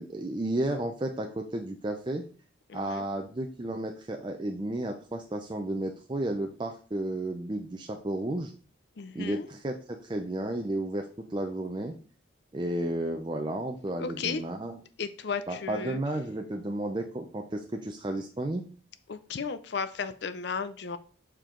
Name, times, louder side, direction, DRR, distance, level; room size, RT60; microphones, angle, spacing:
voice 1, 0.0-2.2 2.7-8.5 9.1-12.0 12.5-14.8 15.5-18.7, right 1 dB, 25° right, 4 dB, 0.5 m, -32 dB
voice 2, 2.7-3.1 9.0-9.5 14.0-14.4 15.0-16.0 19.1-21.0, left 5 dB, 55° left, 11 dB, 0.5 m, -34 dB
7.0 x 4.5 x 3.7 m, 0.40 s
head